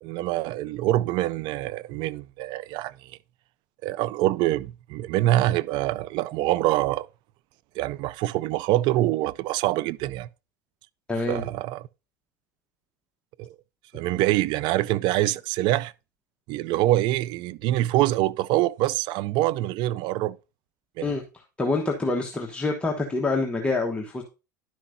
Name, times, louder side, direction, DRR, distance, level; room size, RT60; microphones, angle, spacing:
voice 1, 0.0-3.1 3.8-7.1 7.8-10.3 11.3-11.8 13.4-13.5 13.9-15.9 16.5-20.4 21.0-21.1, right 15 dB, 55° right, 0.4 m, -25 dB
voice 2, 11.1-11.4 21.0-24.2, left 3 dB, 10° left, 1.2 m, -27 dB
11.0 x 5.9 x 2.6 m
hypercardioid pair, 85°, 10 cm